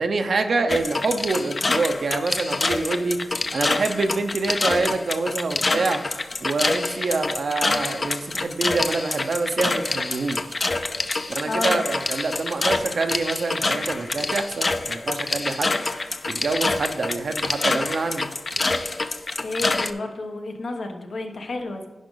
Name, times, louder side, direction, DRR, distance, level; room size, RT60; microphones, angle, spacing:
voice 1, 0.0-3.2 3.5-6.0 6.4-10.6 11.3-15.8 16.2-18.3, right 3 dB, 70° right, 7 dB, 0.7 m, -26 dB
sound 1, 0.7-19.9, left 3 dB, 40° left, 0.5 m, -26 dB
voice 2, 11.4-11.8 19.4-21.9, left 2 dB, 75° left, 4 dB, 1.1 m, -31 dB
10.0 x 5.1 x 3.9 m, 1.3 s
wide cardioid pair, 85°, 0 cm